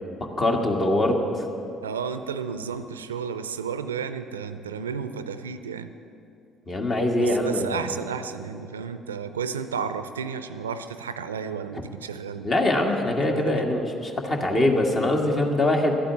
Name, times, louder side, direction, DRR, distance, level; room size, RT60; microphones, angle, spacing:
voice 1, 0.4-1.2 6.7-7.8 12.4-15.9, left 1 dB, 40° left, 2 dB, 1.9 m, -23 dB
voice 2, 1.8-5.9 7.2-12.5 13.2-13.6, right 6 dB, 85° right, 11 dB, 0.5 m, -32 dB
12.0 x 8.8 x 8.3 m, 2.7 s
hypercardioid pair, 50°, 0 cm